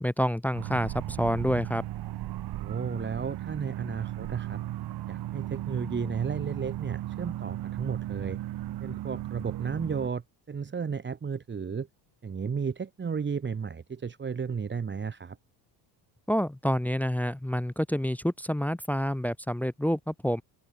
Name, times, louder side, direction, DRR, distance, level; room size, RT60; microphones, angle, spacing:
voice 1, 0.0-1.8 16.3-20.4, equal, 5° left, 0.6 m, -28 dB
sound 1, 0.5-10.1, right 14 dB, 50° right, 1.3 m, -36 dB
voice 2, 2.6-4.6 5.1-8.4 8.8-11.9 12.2-15.4, right 6 dB, 20° right, 1.4 m, -33 dB
open air
cardioid pair, 115°, 50 cm